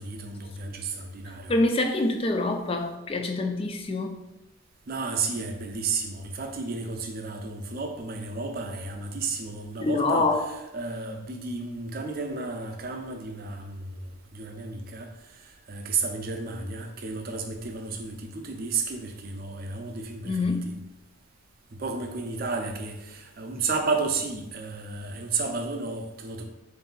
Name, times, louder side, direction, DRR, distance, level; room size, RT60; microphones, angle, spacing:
voice 1, 0.0-1.5 4.9-10.3 10.7-15.1 15.7-20.7 21.7-26.4, right 4 dB, 45° right, 4 dB, 0.5 m, -32 dB
voice 2, 1.5-4.2 9.8-10.5 20.2-20.7, left 2 dB, 25° left, 5 dB, 0.3 m, -25 dB
3.7 x 2.6 x 4.0 m, 0.95 s
head